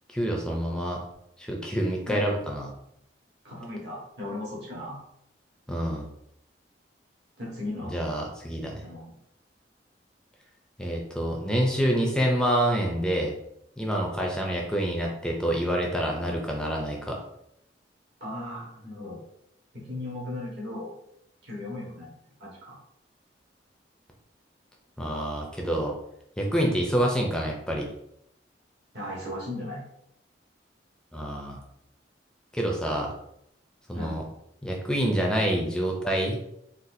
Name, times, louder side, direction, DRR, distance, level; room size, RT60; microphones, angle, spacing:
voice 1, 0.1-1.0 1.4-2.7 5.7-6.1 7.9-8.8 10.8-13.3 13.8-17.2 25.0-25.9 26.4-27.9 31.1-31.6 32.5-33.1 33.9-34.2 34.6-36.4, right 1 dB, 5° left, -1 dB, 0.5 m, -27 dB
voice 2, 3.4-5.0 7.4-7.9 8.8-9.1 18.2-19.2 19.7-20.9 21.4-22.1 22.4-22.8 28.9-29.8 33.9-34.3, left 1 dB, 65° right, -6 dB, 1.3 m, -36 dB
4.0 x 2.3 x 2.6 m, 0.77 s
head